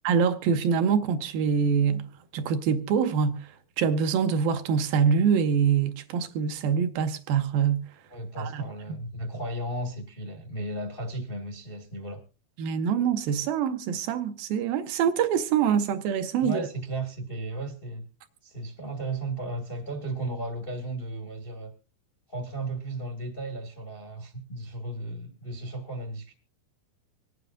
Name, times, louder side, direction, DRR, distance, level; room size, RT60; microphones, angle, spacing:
voice 1, 0.1-2.1 2.3-3.5 3.8-7.8 8.4-8.6 12.6-16.7, right 7 dB, 75° right, 2.5 m, -25 dB
voice 2, 8.1-12.2 16.4-18.1 18.4-21.7 22.3-26.3, right 2 dB, 45° left, 0.6 m, -35 dB
25.5 x 9.2 x 2.4 m
omnidirectional pair, 4.4 m